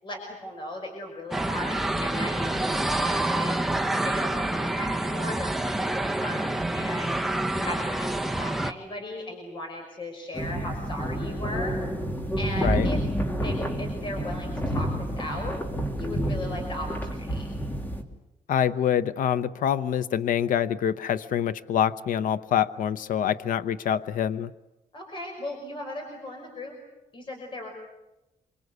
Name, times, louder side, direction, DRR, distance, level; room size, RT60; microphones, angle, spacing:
voice 1, 0.0-3.6 4.0-7.2 7.5-11.8 12.4-13.0 13.4-15.6 16.0-17.5 24.9-26.8 27.1-27.7, left 1 dB, 35° left, 3 dB, 5.8 m, -37 dB
sound 1, 1.3-8.7, right 1 dB, ahead, 1.0 m, -27 dB
sound 2, 10.3-18.0, equal, 15° left, 2.7 m, -29 dB
voice 2, 18.5-24.5, left 9 dB, 80° left, 14 dB, 0.9 m, -25 dB
27.0 x 25.5 x 8.2 m, 0.97 s
cardioid pair, 145°, 14 cm